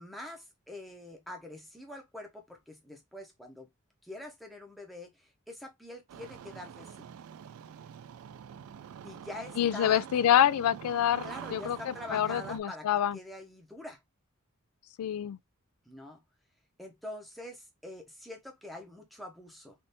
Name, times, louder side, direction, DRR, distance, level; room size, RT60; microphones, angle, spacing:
voice 1, 0.0-3.7 4.0-7.1 9.0-10.0 11.2-12.9 13.1-14.0 15.9-16.2 16.8-19.7, left 1 dB, ahead, 0.8 m, -45 dB
Engine starting, 6.1-12.6, right 8 dB, 75° right, 0.3 m, -45 dB
voice 2, 9.6-13.2 15.0-15.4, left 10 dB, 90° left, 0.3 m, -27 dB
3.4 x 2.7 x 2.6 m
head